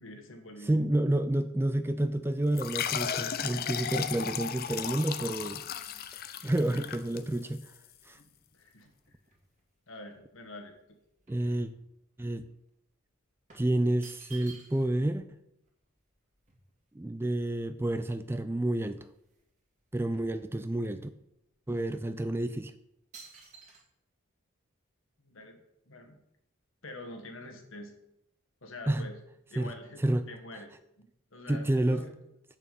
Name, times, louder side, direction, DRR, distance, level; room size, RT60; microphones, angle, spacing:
voice 1, 0.0-0.8 8.1-9.2 9.9-10.7 25.2-26.2 26.8-27.9 28.6-29.1 29.5-32.1, left 1 dB, 65° left, 4 dB, 1.5 m, -46 dB
voice 2, 0.6-5.6 6.4-7.6 8.1-8.2 11.3-11.7 12.2-12.4 13.5-15.4 16.9-19.1 19.9-21.1 21.7-22.7 28.9-29.1 29.6-29.7 30.0-30.2 31.5-32.0, right 1 dB, 10° right, 11 dB, 0.3 m, -29 dB
sound 1, 2.6-7.7, left 8 dB, 45° left, 0.5 m, -35 dB
sound 2, 6.1-9.7 10.1-12.3 12.6-12.8 13.5-15.1 15.4-15.5 15.7-17.8 18.4-18.5 18.7-19.5 19.8-21.0 21.6-21.7 22.3-22.6 23.1-23.8, right 4 dB, 35° right, 2.0 m, -56 dB
8.5 x 6.8 x 5.3 m, 0.81 s
head